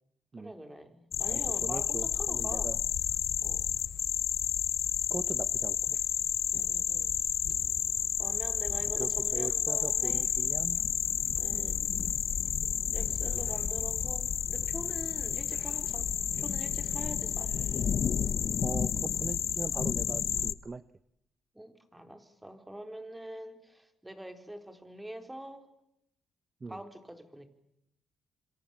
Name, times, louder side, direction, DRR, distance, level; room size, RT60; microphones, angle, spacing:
voice 1, 0.4-2.7 3.4-3.7 6.5-7.1 8.2-10.3 11.4-11.8 12.6-17.5 21.5-25.7 26.7-27.5, right 1 dB, 10° right, 8 dB, 4.3 m, -45 dB
sound 1, 1.1-20.5, left 8 dB, 55° left, 1.0 m, -31 dB
voice 2, 1.3-2.8 5.1-5.8 9.0-10.8 11.5-11.8 18.6-20.8 26.6-26.8, right 4 dB, 30° right, 15 dB, 1.0 m, -40 dB
26.5 x 26.0 x 7.3 m, 0.80 s
cardioid pair, 90°, 0 cm